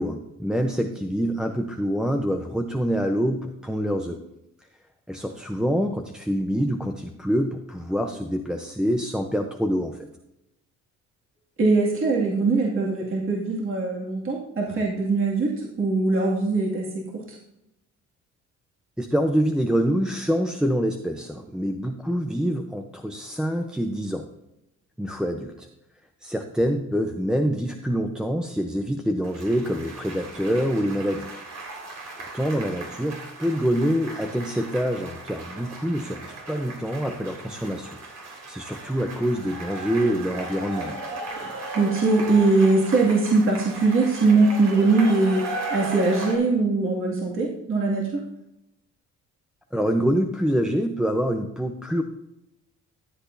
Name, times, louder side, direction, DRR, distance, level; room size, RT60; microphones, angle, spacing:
voice 1, 0.0-4.2 5.1-10.1 19.0-24.3 25.0-25.7 26.2-31.3 32.2-38.0 38.3-41.0 49.7-52.0, equal, ahead, 3 dB, 0.7 m, -26 dB
voice 2, 11.6-16.9 17.1-17.4 41.4-45.4 45.7-48.2, right 3 dB, 45° right, -3 dB, 2.3 m, -21 dB
sound 1, 29.2-46.4, right 2 dB, 60° right, 3.1 m, -37 dB
13.5 x 8.0 x 2.7 m, 0.86 s
cardioid pair, 90°, 30 cm